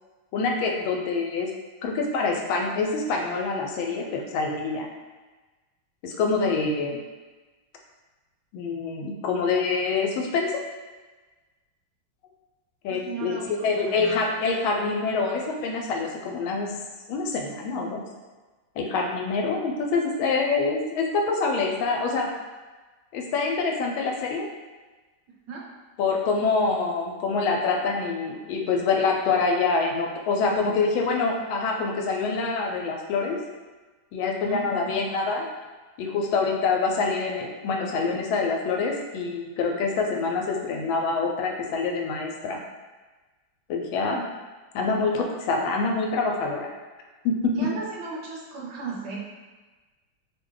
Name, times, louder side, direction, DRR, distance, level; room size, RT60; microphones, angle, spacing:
voice 1, 0.3-1.5 1.8-4.9 6.0-7.0 8.5-10.7 12.8-13.3 13.6-16.7 17.1-18.0 18.8-22.3 23.1-24.5 26.0-33.4 34.1-35.4 36.0-42.6 43.7-44.2 44.7-46.7 47.2-47.5, left 4 dB, 90° left, 1 dB, 1.4 m, -26 dB
voice 2, 12.9-14.2 25.5-25.6 34.4-35.0 47.6-49.2, right 4 dB, 75° right, -3 dB, 1.2 m, -36 dB
3.1 x 2.2 x 3.7 m, 1.3 s
omnidirectional pair, 2.1 m